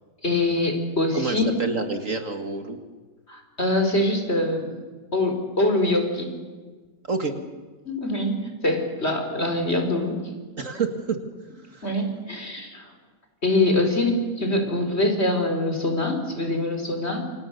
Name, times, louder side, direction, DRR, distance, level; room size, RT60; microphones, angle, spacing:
voice 1, 0.2-1.6 3.3-4.7 5.1-6.4 7.8-8.4 8.6-10.2 11.8-12.9 13.4-17.2, left 2 dB, 35° left, 4 dB, 4.7 m, -24 dB
voice 2, 1.1-2.8 7.1-7.3 10.6-11.2 11.7-11.9, right 4 dB, 50° right, 6 dB, 2.1 m, -28 dB
29.0 x 26.5 x 6.8 m, 1.4 s
omnidirectional pair, 1.8 m